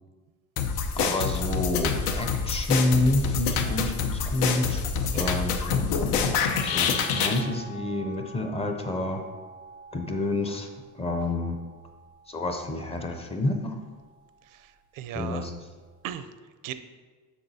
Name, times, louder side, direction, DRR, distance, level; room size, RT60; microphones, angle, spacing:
sound 1, 0.6-7.4, left 6 dB, 90° left, 0.8 m, -27 dB
voice 1, 1.0-5.8 6.6-9.3 9.9-10.7 10.9-11.6 12.3-13.8 15.1-15.5, left 2 dB, 15° left, 5 dB, 0.5 m, -28 dB
sound 2, 6.1-8.6, left 1 dB, 75° left, 1.4 m, -40 dB
sound 3, 6.4-12.7 13.3-14.6 16.1-16.2, left 1 dB, 55° left, 1.9 m, -45 dB
voice 2, 14.4-15.5 16.0-16.3 16.6-16.8, right 11 dB, 65° right, 12 dB, 0.5 m, -38 dB
7.1 x 5.9 x 4.1 m, 1.4 s
cardioid pair, 150°, 35 cm